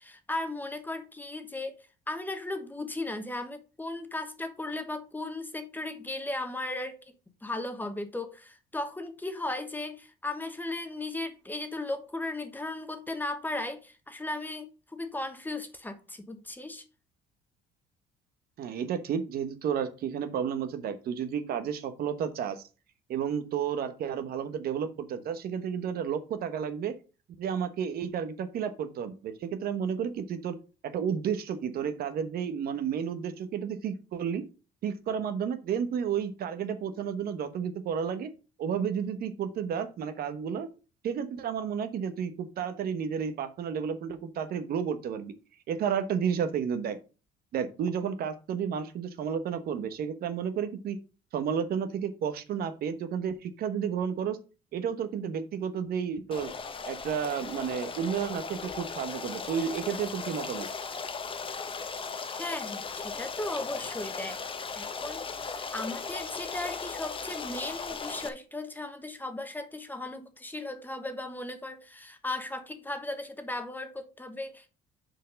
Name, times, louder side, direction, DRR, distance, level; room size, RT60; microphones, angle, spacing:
voice 1, 0.0-7.0 7.4-16.8 62.4-64.4 64.7-74.7, left 2 dB, 10° left, 1.2 m, -36 dB
voice 2, 18.6-22.6 23.1-26.9 27.4-30.6 30.8-34.4 34.8-38.3 38.6-40.7 41.0-45.3 45.7-47.0 47.5-51.0 51.3-54.4 54.7-56.5 56.9-60.7, right 7 dB, 65° right, 1.1 m, -32 dB
Stream, 56.3-68.3, left 5 dB, 30° left, 1.0 m, -37 dB
6.4 x 4.6 x 6.3 m
cardioid pair, 110°, 17 cm